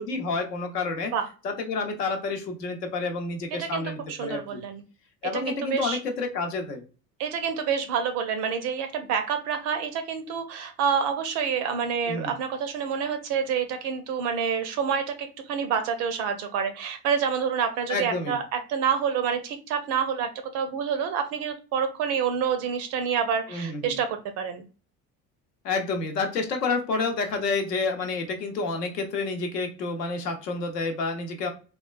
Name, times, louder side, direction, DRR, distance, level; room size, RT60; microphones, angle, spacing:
voice 1, 0.0-1.1 1.4-4.6 5.2-6.8 12.1-12.3 17.9-18.4 23.5-24.0 25.6-31.5, left 3 dB, 70° left, 5 dB, 0.8 m, -29 dB
voice 2, 3.5-4.8 5.2-6.0 7.2-24.6 26.9-27.0, right 7 dB, 35° right, 8 dB, 0.4 m, -28 dB
3.5 x 2.3 x 2.3 m, 0.35 s
figure-of-eight pair, 60°, 50 cm